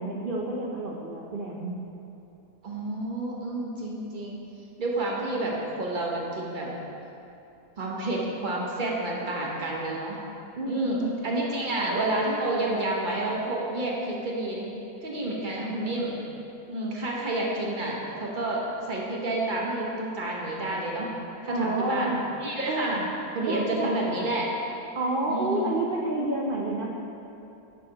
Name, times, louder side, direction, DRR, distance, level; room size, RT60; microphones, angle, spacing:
voice 1, 0.0-1.8 10.6-11.1 11.5-12.0 21.5-22.3 22.7-23.0 23.4-24.2 24.9-26.9, right 2 dB, 75° right, -2 dB, 0.4 m, -29 dB
voice 2, 2.6-4.4 4.8-6.7 7.8-10.2 10.7-14.7 15.0-16.2 16.7-21.1 21.4-22.1 22.4-23.0 23.3-24.5 25.3-25.7, right 2 dB, 40° right, -3 dB, 0.8 m, -29 dB
8.9 x 6.2 x 2.9 m, 2.8 s
omnidirectional pair, 1.7 m